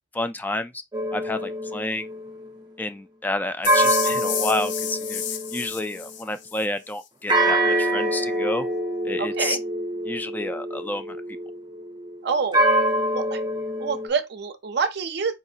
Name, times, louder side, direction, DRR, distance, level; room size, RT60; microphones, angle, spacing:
voice 1, 0.1-0.7 1.1-2.1 2.8-5.2 5.5-8.7 9.0-9.6 10.0-11.2, left 2 dB, 10° left, 0.3 m, -30 dB
sound 1, 0.9-2.6 3.7-6.1 7.3-12.2 12.5-14.1, right 1 dB, 25° right, 0.7 m, -25 dB
sound 2, 3.6-6.7, left 9 dB, 75° left, 0.5 m, -31 dB
voice 2, 9.2-9.6 12.2-12.7 13.1-13.4 13.8-15.3, right 5 dB, 60° right, 0.5 m, -26 dB
4.7 x 2.5 x 2.7 m
head